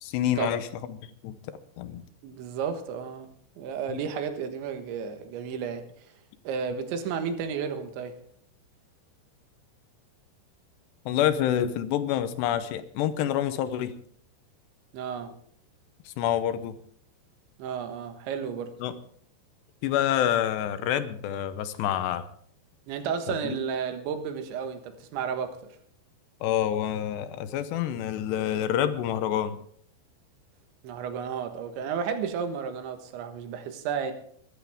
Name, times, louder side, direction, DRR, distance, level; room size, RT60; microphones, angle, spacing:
voice 1, 0.0-1.4 1.8-2.0 3.9-4.0 11.1-13.9 16.1-16.7 18.8-18.9 19.8-22.2 23.4-23.6 26.4-29.6, left 10 dB, 80° left, 12 dB, 2.9 m, -27 dB
voice 2, 2.2-3.3 3.6-5.8 6.5-8.2 14.9-15.3 17.6-18.7 22.9-25.6 30.8-34.1, right 7 dB, 85° right, 7 dB, 3.8 m, -32 dB
22.0 x 11.5 x 3.6 m, 0.62 s
omnidirectional pair, 5.1 m